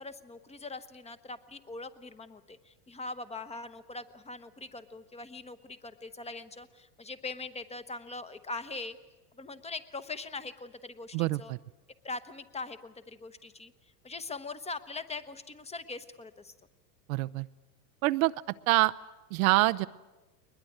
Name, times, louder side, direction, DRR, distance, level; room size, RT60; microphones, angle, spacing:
voice 1, 0.0-9.0 9.4-11.5 12.0-13.7 14.0-16.5, left 3 dB, 15° left, 12 dB, 1.0 m, -42 dB
voice 2, 11.1-11.6 17.1-17.5 18.0-18.3 18.7-18.9 19.3-19.9, right 21 dB, 55° right, 13 dB, 0.7 m, -25 dB
21.5 x 21.0 x 9.3 m, 1.2 s
hypercardioid pair, 105°, 49 cm